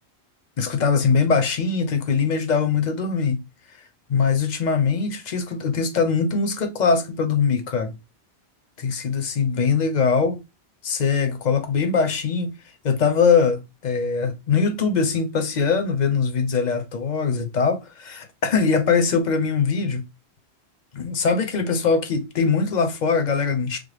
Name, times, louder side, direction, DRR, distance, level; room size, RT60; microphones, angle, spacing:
voice 1, 0.6-3.4 4.1-7.9 8.8-10.4 10.8-12.5 12.8-20.0 20.9-23.8, left 5 dB, 50° left, 0.7 m, -22 dB
3.4 x 2.1 x 3.1 m
omnidirectional pair, 1.1 m